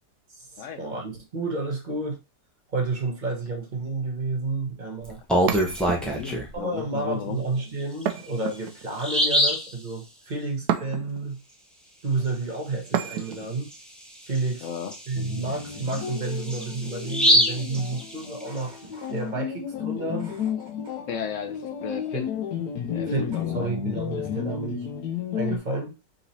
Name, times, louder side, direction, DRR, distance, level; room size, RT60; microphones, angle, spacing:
voice 1, 0.3-2.2 2.7-5.2 6.5-11.4 12.0-13.7 14.3-14.7 15.1-21.0 22.1-22.3 23.1-24.9 25.3-26.0, right 3 dB, 35° right, 0.9 m, -31 dB
Bird vocalization bird call bird song, 5.1-6.5 8.0-8.1 8.5-8.6 9.0-9.7 13.2-13.3 13.7-13.8 14.3-18.6, equal, ahead, 0.4 m, -25 dB
sound 1, 5.5-6.4 8.1-9.0 10.7-11.3 12.9-13.6, right 9 dB, 85° right, 1.2 m, -30 dB
voice 2, 6.0-7.4 14.6-14.9 21.1-22.3 22.9-23.7, left 7 dB, 65° left, 0.8 m, -34 dB
sound 2, 15.2-25.6, left 8 dB, 85° left, 1.2 m, -32 dB
3.9 x 2.9 x 4.0 m
omnidirectional pair, 1.7 m